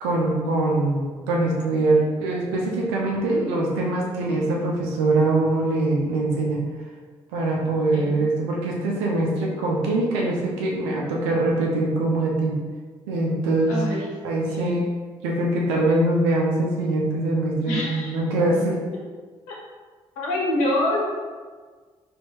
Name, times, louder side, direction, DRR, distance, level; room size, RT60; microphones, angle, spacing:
voice 1, 0.0-6.6 7.3-12.6 13.1-14.9 15.2-18.8, right 2 dB, 80° right, -2 dB, 0.7 m, -23 dB
voice 2, 3.1-3.4 7.6-8.2 13.7-14.0 14.4-14.8 17.7-18.1 19.5-19.6 20.2-21.0, left 1 dB, 75° left, -4 dB, 1.0 m, -27 dB
4.4 x 2.7 x 2.9 m, 1.5 s
hypercardioid pair, 45°, 14 cm